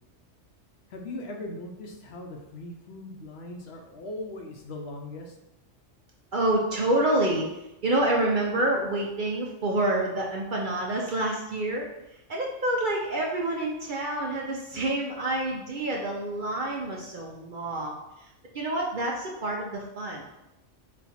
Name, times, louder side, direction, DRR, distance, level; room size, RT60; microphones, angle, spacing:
voice 1, 0.9-5.2, left 2 dB, 65° left, 2 dB, 0.8 m, -39 dB
voice 2, 6.3-7.5 7.8-11.9 12.3-18.0 18.5-20.2, right 1 dB, 55° right, -1 dB, 0.6 m, -27 dB
4.2 x 2.4 x 4.1 m, 0.92 s
omnidirectional pair, 1.3 m